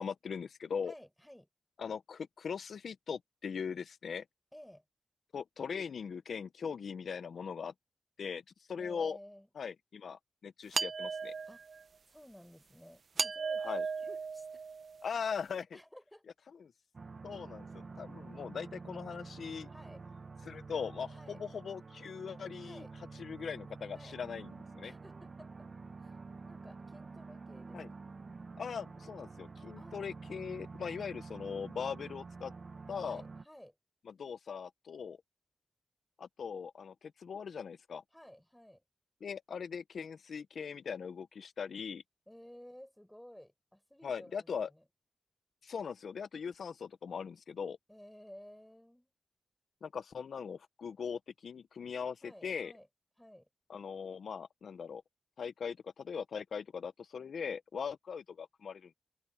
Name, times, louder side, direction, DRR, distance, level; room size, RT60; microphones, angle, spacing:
voice 1, 0.0-0.9 1.8-4.2 5.3-7.7 8.2-8.4 8.7-9.2 9.6-11.3 13.6-13.9 15.0-15.8 17.2-19.7 20.4-22.8 23.2-24.9 27.7-27.9 28.6-32.5 32.9-33.2 34.1-35.2 36.2-38.0 39.2-42.0 44.0-44.7 45.6-47.8 49.8-52.7 53.7-55.0 55.4-58.9, left 6 dB, 90° left, 0.5 m, -40 dB
voice 2, 0.9-1.5 4.5-4.8 8.8-9.5 11.5-11.6 12.1-14.6 15.7-16.3 19.7-20.0 21.1-21.4 22.6-22.9 23.9-24.2 24.8-25.7 26.0-26.2 26.4-28.0 29.8-30.1 33.0-33.8 38.1-38.8 42.3-44.8 47.9-49.1 52.2-52.9 53.2-53.5, equal, 5° left, 4.3 m, -55 dB
sound 1, 10.7-11.8 13.2-15.1, right 5 dB, 70° right, 0.6 m, -36 dB
sound 2, 16.9-33.4, right 4 dB, 50° right, 0.9 m, -48 dB
wide cardioid pair, 85°, 0 cm